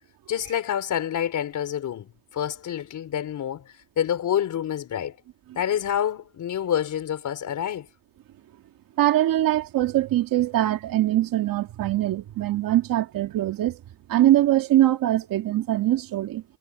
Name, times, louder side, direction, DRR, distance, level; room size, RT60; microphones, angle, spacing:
voice 1, 0.3-3.6 4.0-5.2 5.6-7.9, left 10 dB, 45° left, 3.8 m, -27 dB
voice 2, 9.0-13.8 14.1-16.4, right 14 dB, 55° right, 2.3 m, -22 dB
cardioid pair, 110°, 41 cm